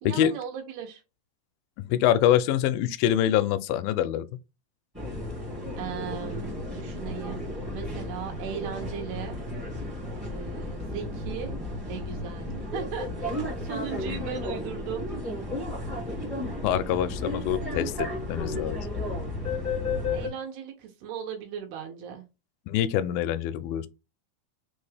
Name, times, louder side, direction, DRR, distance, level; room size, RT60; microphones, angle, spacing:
voice 1, 0.0-1.0 5.8-9.4 10.2-11.5 11.8-15.2 20.1-22.2, right 8 dB, 85° right, 3.0 m, -37 dB
voice 2, 1.8-4.3 14.1-14.2 16.6-18.9 22.7-23.9, left 11 dB, 80° left, 2.2 m, -25 dB
sound 1, 4.9-20.3, left 2 dB, 25° right, 0.5 m, -33 dB
6.2 x 2.3 x 3.3 m
omnidirectional pair, 4.4 m